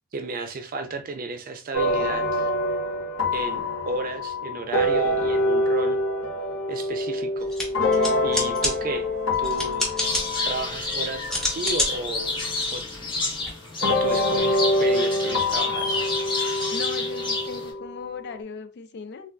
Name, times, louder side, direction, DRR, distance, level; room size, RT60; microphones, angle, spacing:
voice 1, 0.1-2.5 3.3-6.0 6.7-7.5 8.2-9.1 9.4-10.1 10.4-12.4 12.7-12.8 13.8-15.9, right 3 dB, 45° right, 0.5 m, -33 dB
sound 1, 1.7-12.5 13.8-18.3, left 1 dB, 90° left, 0.7 m, -26 dB
sound 2, 7.4-13.5, left 1 dB, ahead, 1.0 m, -31 dB
sound 3, 10.0-17.7, left 3 dB, 25° left, 1.0 m, -30 dB
voice 2, 16.7-19.3, left 5 dB, 55° left, 0.4 m, -37 dB
3.7 x 2.3 x 2.2 m
head